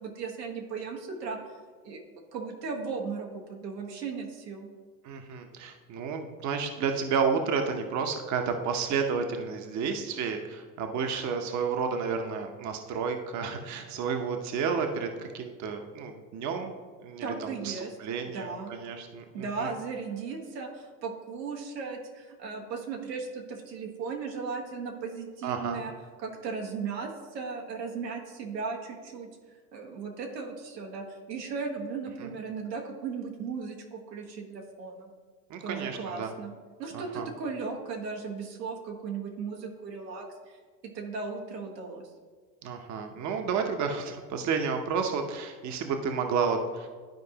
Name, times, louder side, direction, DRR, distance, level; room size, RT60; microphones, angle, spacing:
voice 1, 0.0-1.4 1.8-2.0 2.3-4.7 17.2-17.9 18.3-18.7 19.3-25.9 26.2-29.3 29.7-35.1 35.6-36.5 36.8-40.6 40.8-42.1, right 5 dB, 90° right, 0 dB, 1.5 m, -36 dB
voice 2, 5.0-16.7 17.0-19.7 25.4-25.8 32.2-32.3 35.5-36.3 36.9-37.3 42.6-46.9, right 5 dB, 35° right, 5 dB, 0.9 m, -31 dB
12.0 x 4.6 x 2.9 m, 1.5 s
hypercardioid pair, 90°, 48 cm